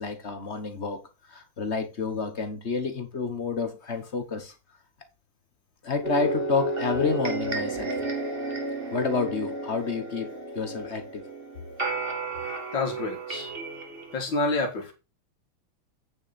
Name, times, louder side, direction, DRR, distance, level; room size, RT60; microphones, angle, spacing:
voice 1, 0.0-4.5 5.8-8.0 8.9-11.3, left 5 dB, 40° left, 1.2 m, -29 dB
sound 1, 6.0-14.2, right 3 dB, 30° right, 2.1 m, -32 dB
voice 2, 12.7-13.5 14.1-14.9, left 3 dB, 60° left, 2.6 m, -28 dB
9.0 x 6.1 x 4.2 m
omnidirectional pair, 2.2 m